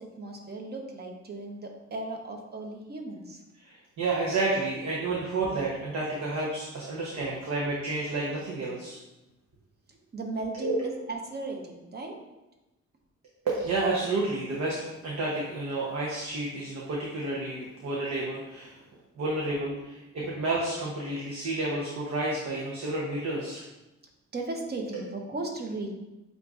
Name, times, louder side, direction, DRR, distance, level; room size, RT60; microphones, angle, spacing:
voice 1, 0.0-3.4 9.9-12.2 20.2-20.3 24.3-25.9, right 2 dB, 35° right, 2 dB, 0.9 m, -36 dB
voice 2, 3.6-9.0 10.6-10.8 13.4-18.8 19.2-23.6, right 2 dB, 60° right, -4 dB, 0.9 m, -30 dB
7.8 x 2.6 x 2.5 m, 1.0 s
cardioid pair, 90°, 30 cm